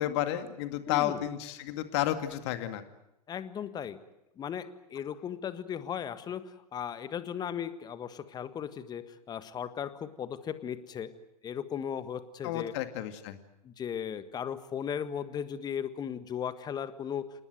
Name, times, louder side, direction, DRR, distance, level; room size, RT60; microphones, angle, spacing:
voice 1, 0.0-2.8 12.4-13.4, left 12 dB, 45° left, 10 dB, 2.2 m, -31 dB
voice 2, 0.9-1.2 3.3-4.0 4.4-11.1 11.4-12.7 13.6-17.3, left 8 dB, 20° left, 13 dB, 1.5 m, -37 dB
28.0 x 19.5 x 9.2 m, 0.88 s
figure-of-eight pair, 100°, 20 cm